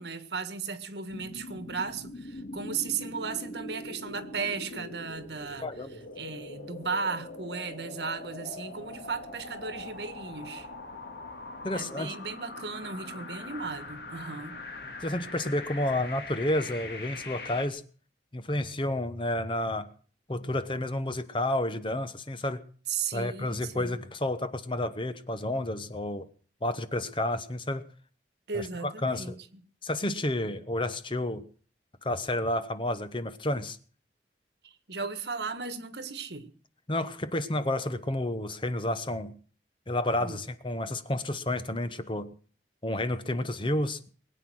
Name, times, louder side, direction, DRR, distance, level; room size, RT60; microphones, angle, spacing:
voice 1, 0.0-5.7 6.2-10.7 11.7-14.6 22.9-24.1 28.5-29.4 34.6-36.5 40.2-40.4, right 5 dB, 70° right, 1.6 m, -36 dB
sound 1, 1.1-17.7, left 2 dB, 65° left, 2.3 m, -42 dB
voice 2, 5.6-5.9 11.6-12.1 15.0-17.8 18.3-19.9 20.3-22.6 23.1-26.3 26.6-27.8 28.5-29.4 29.8-31.4 32.0-33.8 36.9-39.3 39.9-42.3 42.8-44.0, left 1 dB, 30° left, 1.0 m, -30 dB
21.0 x 9.1 x 6.3 m
head